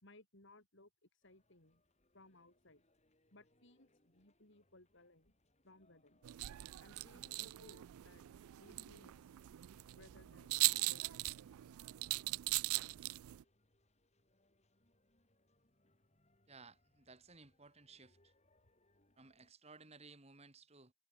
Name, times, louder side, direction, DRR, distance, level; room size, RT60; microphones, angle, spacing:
voice 1, 0.0-1.8 2.1-2.8 3.3-5.3 5.6-6.2 6.8-8.2 8.6-9.3 9.9-11.4, left 2 dB, 55° left, 4.1 m, -63 dB
sound 1, 1.2-19.5, left 1 dB, 30° left, 6.2 m, -77 dB
sound 2, 6.2-13.4, right 20 dB, 75° right, 0.3 m, -40 dB
voice 2, 16.5-18.3 19.2-20.9, right 4 dB, 30° right, 2.1 m, -59 dB
head